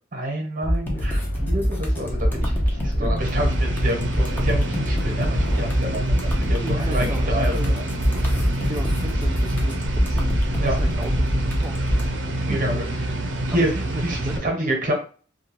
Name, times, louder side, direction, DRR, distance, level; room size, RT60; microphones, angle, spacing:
voice 1, 0.1-2.5 2.8-7.9 10.6-10.8 12.5-12.8 13.5-13.7 14.0-14.9, right 1 dB, 45° right, 1 dB, 1.0 m, -28 dB
sound 1, 0.6-12.1, equal, 10° left, 0.6 m, -24 dB
sound 2, 0.9-9.7, left 4 dB, 65° left, 0.4 m, -40 dB
voice 2, 2.3-3.3 6.3-7.7 8.7-12.6 12.9-14.7, right 1 dB, 25° right, -1 dB, 0.3 m, -36 dB
sound 3, 3.2-14.4, right 1 dB, 80° right, 0.6 m, -28 dB
2.7 x 2.3 x 2.9 m, 0.39 s
head